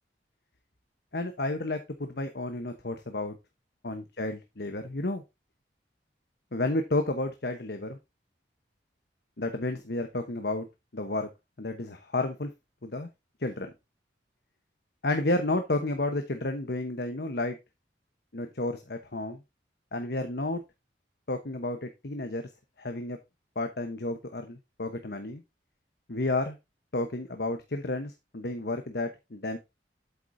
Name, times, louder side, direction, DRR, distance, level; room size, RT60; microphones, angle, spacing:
voice 1, 1.1-3.4 3.8-5.2 6.5-8.0 9.4-10.7 10.9-11.3 11.6-12.5 12.8-13.1 13.4-13.7 15.0-17.6 18.3-19.4 19.9-20.6 21.3-22.5 22.8-23.2 23.5-25.4 26.1-26.6 26.9-29.6, left 2 dB, 60° left, 7 dB, 1.1 m, -31 dB
8.3 x 8.1 x 2.7 m, 0.23 s
head